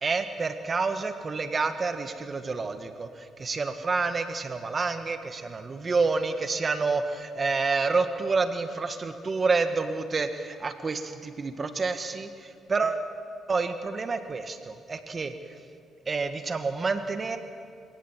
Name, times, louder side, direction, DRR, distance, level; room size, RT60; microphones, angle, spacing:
voice 1, 0.0-13.1 13.5-15.3 16.1-17.4, right 4 dB, 35° right, 8 dB, 1.6 m, -28 dB
28.5 x 17.5 x 7.5 m, 2.3 s
cardioid pair, 90°, 0 cm